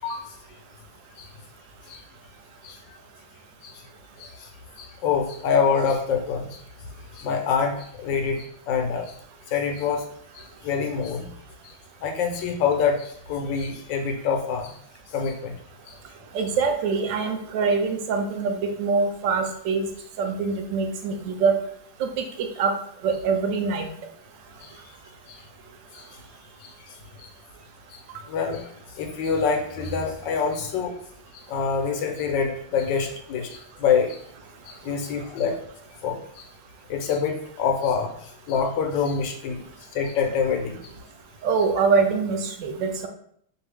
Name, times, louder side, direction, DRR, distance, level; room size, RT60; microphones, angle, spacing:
voice 1, 4.8-6.6 7.2-7.7 8.0-9.1 9.5-10.0 10.6-11.3 12.0-14.7 15.1-15.5 24.6-24.7 25.3-25.4 25.9-26.0 26.6-26.7 27.2-27.3 27.9-28.0 28.3-28.7 29.0-31.0 31.5-34.2 34.7-35.5 36.0-36.4 36.9-38.1 38.5-39.6 39.9-40.8, left 6 dB, 80° left, 3 dB, 1.4 m, -25 dB
voice 2, 16.3-19.9 20.2-21.6 22.0-22.1 22.6-22.7 23.0-23.9 41.4-43.1, right 5 dB, 75° right, 5 dB, 1.3 m, -24 dB
4.5 x 2.7 x 3.3 m, 0.66 s
omnidirectional pair, 2.0 m